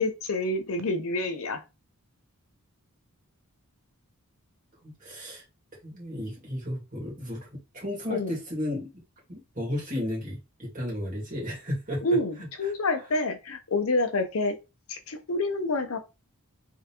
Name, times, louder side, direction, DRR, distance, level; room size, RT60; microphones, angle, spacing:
voice 1, 0.0-1.6 8.1-8.3 12.0-14.6 14.9-16.0, left 2 dB, 70° left, 0.7 m, -28 dB
voice 2, 4.8-5.4 5.8-8.9 9.3-12.0 12.6-12.7, left 1 dB, 35° right, 2.1 m, -34 dB
3.6 x 3.4 x 2.9 m
head